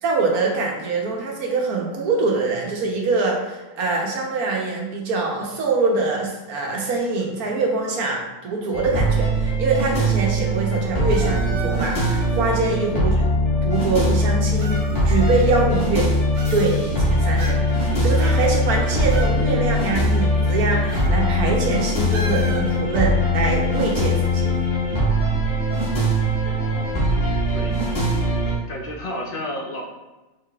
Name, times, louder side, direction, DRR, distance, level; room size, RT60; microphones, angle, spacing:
voice 1, 0.0-13.1 13.6-14.7 15.0-16.1 16.5-24.5, right 3 dB, 90° right, -1 dB, 1.4 m, -24 dB
sound 1, 8.7-28.6, equal, 40° left, 1.5 m, -21 dB
sound 2, 11.1-12.4 13.4-13.5 14.6-15.9 16.3-17.0 17.4-17.8 18.2-19.4 19.6-19.7 20.9-21.2 21.5-21.6 22.1-22.8, right 3 dB, 45° right, 0.6 m, -36 dB
voice 2, 26.4-27.2 27.5-27.8 28.7-29.8, left 1 dB, 65° left, 0 dB, 0.5 m, -33 dB
4.8 x 4.1 x 2.3 m, 1.1 s
omnidirectional pair, 1.5 m